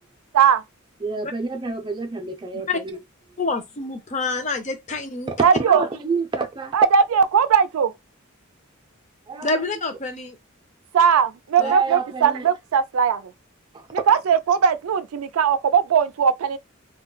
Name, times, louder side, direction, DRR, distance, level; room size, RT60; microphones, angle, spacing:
voice 1, 1.0-2.9 5.3-6.8 9.3-9.5 11.6-12.5 13.7-14.1, right 4 dB, 20° right, 0.5 m, -28 dB
voice 2, 3.4-5.3 9.4-10.4 11.6-11.7, left 3 dB, 35° left, 0.6 m, -27 dB
voice 3, 5.4-5.8 6.7-7.9 10.9-13.2 13.9-16.6, right 7 dB, 90° right, 0.4 m, -19 dB
2.3 x 2.0 x 3.8 m
head